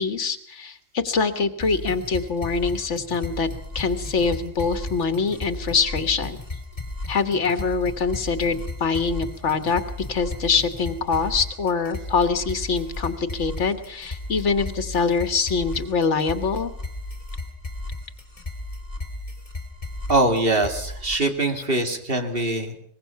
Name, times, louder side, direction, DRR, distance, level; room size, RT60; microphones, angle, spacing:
voice 1, 0.0-3.5 3.7-6.4 7.1-9.8 10.1-16.7, left 4 dB, 90° left, 10 dB, 1.7 m, -24 dB
sound 1, 1.6-21.2, left 2 dB, 30° left, 3.2 m, -35 dB
voice 2, 20.1-22.7, right 2 dB, 55° right, 5 dB, 2.6 m, -23 dB
23.5 x 20.5 x 5.8 m, 0.66 s
omnidirectional pair, 1.2 m